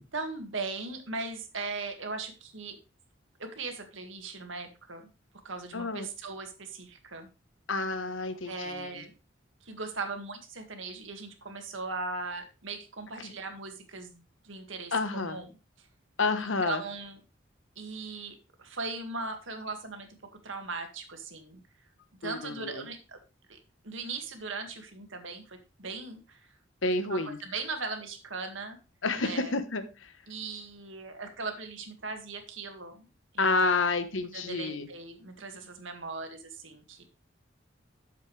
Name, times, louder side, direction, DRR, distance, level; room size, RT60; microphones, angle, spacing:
voice 1, 0.1-2.8 3.4-5.0 5.4-7.3 8.5-9.1 9.6-15.5 15.8-15.9 16.4-17.2 17.8-20.1 20.4-21.6 22.2-23.2 23.5-23.6 23.8-26.5 27.1-28.8 29.2-29.6 30.3-33.1 33.3-37.0, right 3 dB, 85° right, 5 dB, 2.0 m, -39 dB
voice 2, 5.7-6.1 7.7-9.0 13.2-13.3 14.9-15.4 16.2-16.8 22.2-22.9 26.8-27.4 29.0-30.1 33.4-34.9, left 3 dB, 85° left, 10 dB, 1.2 m, -29 dB
11.0 x 7.4 x 3.3 m, 0.30 s
head